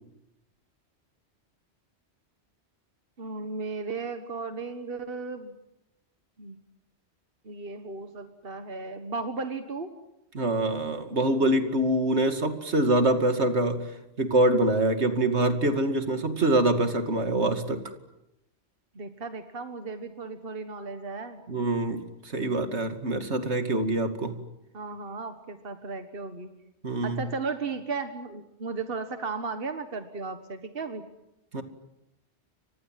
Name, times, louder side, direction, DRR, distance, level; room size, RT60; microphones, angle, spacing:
voice 1, 3.2-5.5 6.4-6.6 7.4-9.9 19.0-21.4 24.7-26.5 27.0-31.0, right 4 dB, 55° right, 7 dB, 1.7 m, -35 dB
voice 2, 10.3-13.8 14.2-17.8 21.5-24.4 26.8-27.2 31.5-31.6, right 1 dB, 75° right, 7 dB, 2.6 m, -25 dB
30.0 x 24.5 x 7.6 m, 0.88 s
omnidirectional pair, 1.2 m